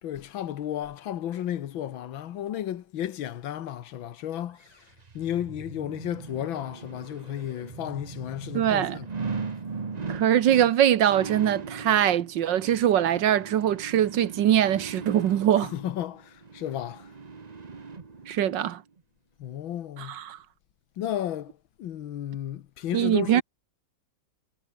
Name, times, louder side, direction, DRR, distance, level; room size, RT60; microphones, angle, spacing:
voice 1, 0.0-4.7 5.2-9.1 15.6-17.1 19.4-20.2 21.0-21.5 21.8-23.4, left 11 dB, 85° left, 1.9 m, -33 dB
sound 1, 4.6-18.5 19.0-19.1, right 4 dB, 30° right, 0.9 m, -39 dB
voice 2, 8.5-9.0 10.1-15.7 18.3-18.8 20.0-20.4 22.9-23.4, right 10 dB, 70° right, 1.6 m, -22 dB
omnidirectional pair, 2.1 m